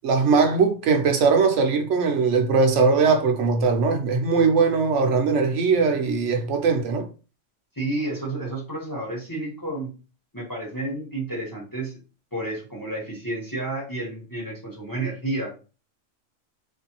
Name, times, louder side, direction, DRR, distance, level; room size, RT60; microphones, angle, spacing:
voice 1, 0.0-7.1, right 4 dB, 75° right, 0.9 m, -20 dB
voice 2, 7.7-9.9 10.3-12.0 12.3-15.6, right 2 dB, 20° left, 0.9 m, -31 dB
3.5 x 2.5 x 2.8 m
omnidirectional pair, 1.3 m